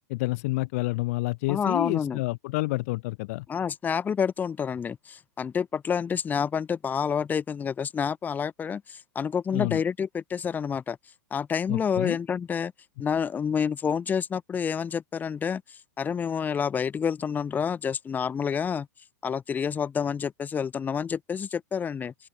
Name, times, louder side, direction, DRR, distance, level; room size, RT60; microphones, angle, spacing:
voice 1, 0.1-3.4 9.5-9.8 11.7-12.2, left 21 dB, 55° left, 1.1 m, -29 dB
voice 2, 1.5-2.2 3.5-11.0 11.3-12.7 13.0-15.6 16.0-18.9 19.2-22.1, left 7 dB, 20° left, 0.9 m, -28 dB
open air
hypercardioid pair, 110°, 9 cm